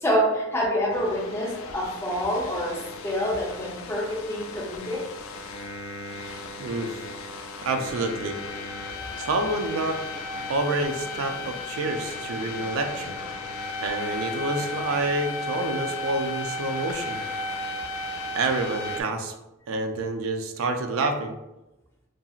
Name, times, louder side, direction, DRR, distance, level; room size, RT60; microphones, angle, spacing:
voice 1, 0.0-5.1, equal, 10° left, -4 dB, 0.6 m, -27 dB
sound 1, 0.9-19.0, left 2 dB, 75° left, 0.3 m, -35 dB
voice 2, 7.6-8.4 9.2-13.2 13.8-17.2 18.3-19.3 19.7-21.4, right 2 dB, 70° right, 5 dB, 0.4 m, -28 dB
2.7 x 2.7 x 2.3 m, 0.97 s
head